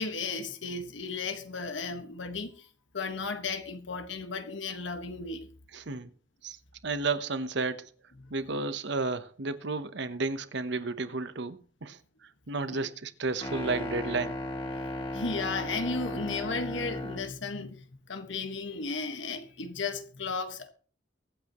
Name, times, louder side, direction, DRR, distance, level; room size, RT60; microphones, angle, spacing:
voice 1, 0.0-2.7 2.9-5.5 8.2-8.3 12.7-12.8 15.1-20.7, left 4 dB, 90° left, 1.5 m, -35 dB
voice 2, 5.7-6.1 6.4-6.6 6.8-7.8 8.3-12.0 12.5-14.4, right 3 dB, 65° right, 0.9 m, -32 dB
sound 1, 13.4-17.3, left 1 dB, 30° left, 2.6 m, -35 dB
23.5 x 8.3 x 3.0 m
head